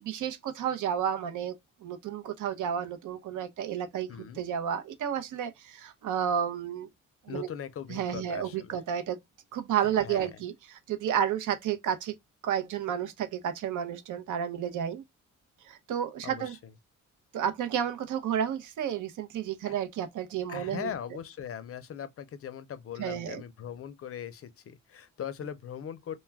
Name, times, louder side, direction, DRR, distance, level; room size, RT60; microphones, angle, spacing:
voice 1, 0.0-1.5 1.8-6.9 7.3-7.5 7.9-9.2 9.5-12.1 12.4-15.0 15.7-16.5 17.3-20.9 23.0-23.4, right 9 dB, 75° right, 0.6 m, -31 dB
voice 2, 4.1-4.4 7.3-8.8 9.8-10.4 16.2-16.7 19.6-19.8 20.5-26.2, left 8 dB, 50° left, 0.5 m, -40 dB
2.3 x 2.1 x 3.2 m
cardioid pair, 105°, 31 cm